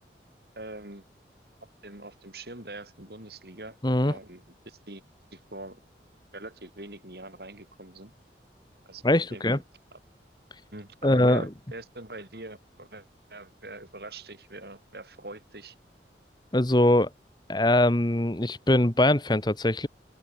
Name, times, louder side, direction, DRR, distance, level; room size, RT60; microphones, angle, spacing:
voice 1, 0.6-1.0 1.6-3.8 4.0-5.0 5.3-5.8 6.3-8.1 8.9-9.6 9.9-10.0 10.7-15.7, right 2 dB, 60° right, 6.4 m, -43 dB
voice 2, 9.0-9.6 11.0-11.4 16.5-17.1 17.5-19.9, left 1 dB, 25° left, 1.3 m, -22 dB
open air
head